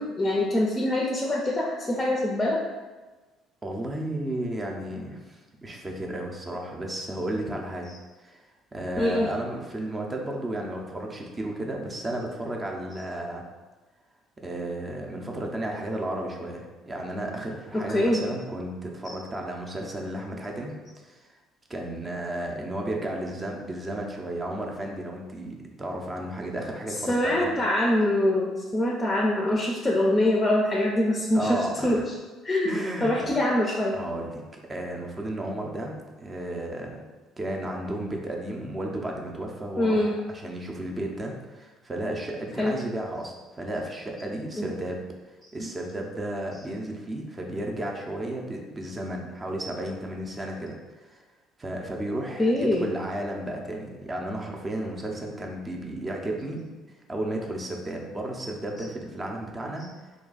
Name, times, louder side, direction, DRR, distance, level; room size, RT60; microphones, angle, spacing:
voice 1, 0.0-2.6 9.0-9.3 17.7-18.2 19.0-19.1 27.1-32.0 32.4-34.0 39.8-40.1 42.6-42.7 44.6-44.7 45.6-45.7 52.4-52.9, left 1 dB, 20° left, -2 dB, 0.5 m, -24 dB
voice 2, 3.6-7.9 8.2-8.4 8.7-13.4 14.4-20.7 21.0-21.3 21.7-27.5 31.3-32.1 32.6-33.4 33.9-37.0 37.4-45.0 45.5-50.7 51.0-51.2 51.6-56.7 57.1-59.9, right 1 dB, 25° right, 0 dB, 0.6 m, -33 dB
2.5 x 2.2 x 3.9 m, 1.3 s
hypercardioid pair, 55°, 0 cm